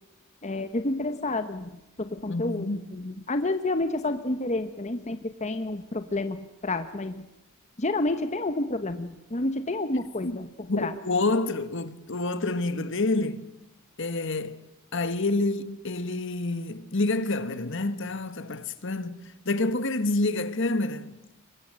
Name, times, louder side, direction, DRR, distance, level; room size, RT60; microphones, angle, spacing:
voice 1, 0.4-7.2 7.8-10.9, left 2 dB, 30° left, 1.0 m, -30 dB
voice 2, 2.3-2.8 10.2-10.4 10.7-13.5 14.0-14.7 14.9-21.2, left 2 dB, 55° left, 1.3 m, -28 dB
24.0 x 22.0 x 7.6 m
head